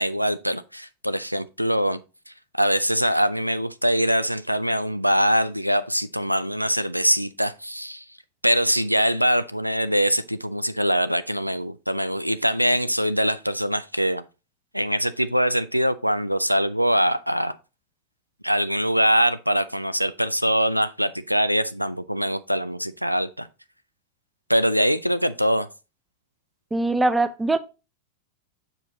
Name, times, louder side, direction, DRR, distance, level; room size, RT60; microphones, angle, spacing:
voice 1, 0.0-2.0 2.3-8.0 8.4-14.2 14.7-17.5 18.4-23.5 24.5-25.7, equal, 90° right, 0.4 m, -23 dB
voice 2, 26.7-27.6, right 2 dB, 10° right, 0.6 m, -22 dB
7.2 x 4.9 x 3.7 m
figure-of-eight pair, 90°, 0 cm